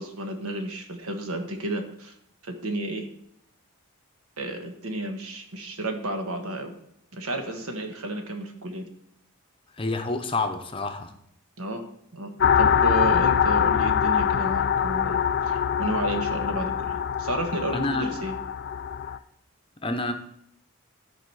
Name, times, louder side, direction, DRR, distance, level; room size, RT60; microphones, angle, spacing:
voice 1, 0.0-2.1 2.4-3.0 4.4-6.7 7.1-8.8 11.6-11.8 12.1-12.3 12.6-18.3, right 1 dB, 85° right, 5 dB, 1.4 m, -32 dB
voice 2, 9.8-11.1 17.7-18.2 19.8-20.1, left 2 dB, 25° left, 6 dB, 0.7 m, -28 dB
sound 1, 12.4-19.2, left 8 dB, 50° left, 0.3 m, -24 dB
12.5 x 4.8 x 4.8 m, 0.72 s
head